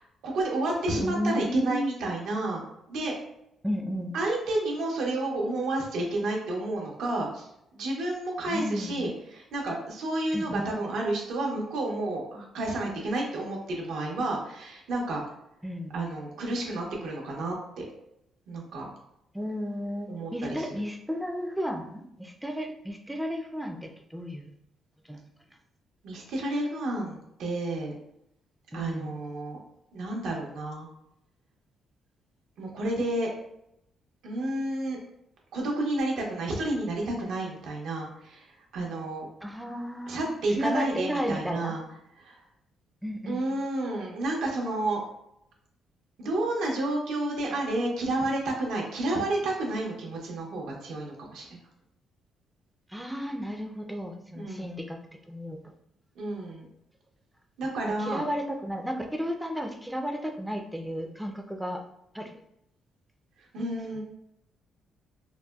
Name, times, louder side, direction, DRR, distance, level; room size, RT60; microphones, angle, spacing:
voice 1, 0.0-3.1 4.1-7.5 7.7-15.2 15.9-17.9 18.5-18.9 20.1-20.6 26.0-27.9 28.7-29.6 29.9-30.9 32.6-33.3 34.2-35.0 35.5-38.5 38.7-39.3 40.1-41.8 42.2-42.4 43.3-45.0 46.2-51.6 54.3-54.7 56.2-56.7 57.6-58.3 63.5-64.0, right 2 dB, 80° right, -1 dB, 0.9 m, -30 dB
voice 2, 1.0-1.9 3.6-4.1 8.5-9.1 10.3-10.6 15.6-15.9 19.3-24.5 25.1-25.2 28.7-29.1 39.4-41.8 43.0-43.5 52.9-55.0 55.3-55.7 58.0-61.8 62.1-62.3 63.6-63.7 63.9-64.0, equal, 5° right, 3 dB, 0.4 m, -33 dB
4.0 x 2.2 x 2.3 m, 0.79 s
cardioid pair, 90°, 0 cm